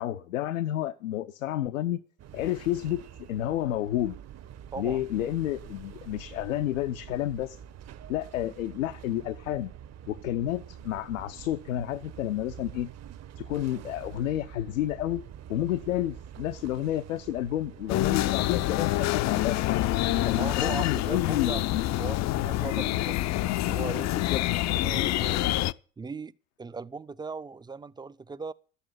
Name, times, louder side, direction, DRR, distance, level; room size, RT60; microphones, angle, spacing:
voice 1, 0.0-2.0 2.3-3.0 3.3-4.2 4.8-7.6 8.1-9.7 10.1-12.9 13.4-15.2 15.5-19.6 20.2-21.8 22.7-22.9 24.1-24.6, left 13 dB, 80° left, 0.9 m, -30 dB
sound 1, 2.2-20.4, right 9 dB, 40° right, 1.1 m, -46 dB
sound 2, 17.9-25.7, left 15 dB, 45° left, 0.7 m, -27 dB
voice 2, 20.1-21.6 22.0-24.1 24.8-25.5 26.0-26.3 26.6-28.5, right 4 dB, 10° right, 0.6 m, -38 dB
12.5 x 8.5 x 9.1 m
hypercardioid pair, 80°, 39 cm